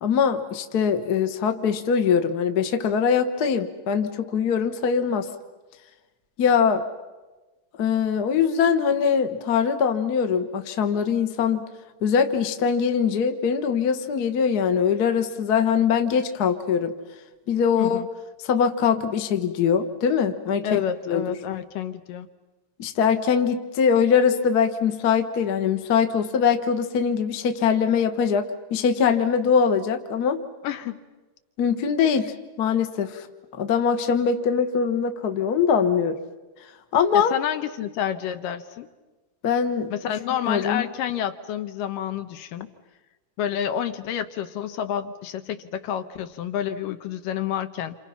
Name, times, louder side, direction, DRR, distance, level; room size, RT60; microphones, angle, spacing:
voice 1, 0.0-5.3 6.4-6.8 7.8-11.7 12.0-16.9 17.5-18.0 18.5-20.8 21.1-21.2 22.8-30.4 31.6-33.3 33.6-36.2 36.9-37.3 39.4-39.9 40.4-40.8, left 7 dB, 60° left, 7 dB, 0.9 m, -22 dB
voice 2, 17.8-18.1 20.6-22.3 30.6-31.0 37.1-38.9 39.9-42.7 43.4-48.0, left 9 dB, 85° left, 9 dB, 2.7 m, -29 dB
28.5 x 28.0 x 5.8 m, 1.2 s
omnidirectional pair, 3.8 m